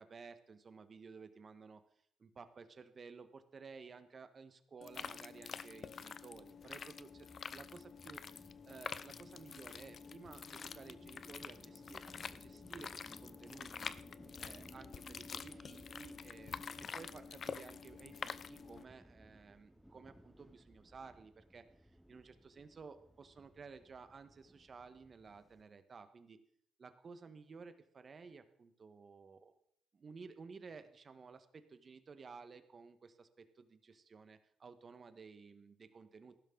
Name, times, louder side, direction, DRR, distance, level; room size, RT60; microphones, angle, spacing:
voice 1, 0.0-1.8 2.2-12.1 12.4-13.9 14.4-26.4 26.8-29.5 29.9-36.3, right 5 dB, 40° right, 10 dB, 1.4 m, -55 dB
sound 1, 4.8-18.8, left 6 dB, 50° left, 0.6 m, -48 dB
sound 2, 6.3-25.6, equal, 5° right, 0.8 m, -60 dB
15.5 x 12.0 x 3.9 m, 0.66 s
cardioid pair, 90°, 0 cm